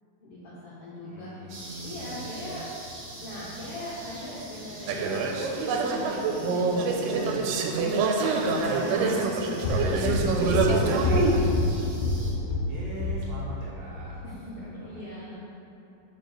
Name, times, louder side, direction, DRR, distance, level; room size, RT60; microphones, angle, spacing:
voice 1, 0.2-1.5 1.8-2.6 3.2-12.7 14.2-15.4, left 1 dB, 70° left, -8 dB, 1.4 m, -40 dB
voice 2, 1.0-2.6 8.8-9.0 12.7-14.3 14.6-15.0, right 2 dB, 65° right, -6 dB, 1.8 m, -41 dB
sound 1, 1.5-12.3, right 1 dB, 45° right, 1.9 m, -45 dB
sound 2, 4.9-11.4, right 4 dB, 85° right, 2.2 m, -26 dB
sound 3, 9.6-13.6 13.9-14.1, left 2 dB, 90° left, 1.3 m, -27 dB
5.4 x 4.6 x 6.3 m, 2.7 s
omnidirectional pair, 3.8 m